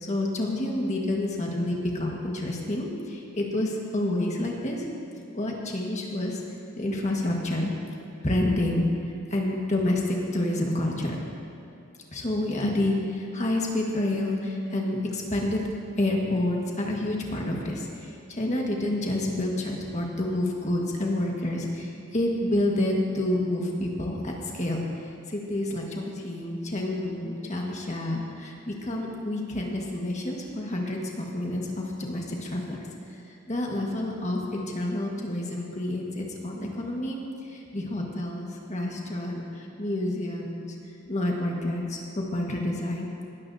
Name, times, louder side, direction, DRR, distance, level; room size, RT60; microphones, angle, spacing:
voice 1, 0.0-4.9 5.3-6.4 6.8-7.7 8.2-8.9 9.3-11.2 12.1-15.6 16.0-24.8 25.3-32.8 33.5-37.2 37.5-40.7 41.1-43.1, left 1 dB, 30° left, -1 dB, 1.6 m, -28 dB
19.0 x 13.0 x 2.8 m, 2.6 s
head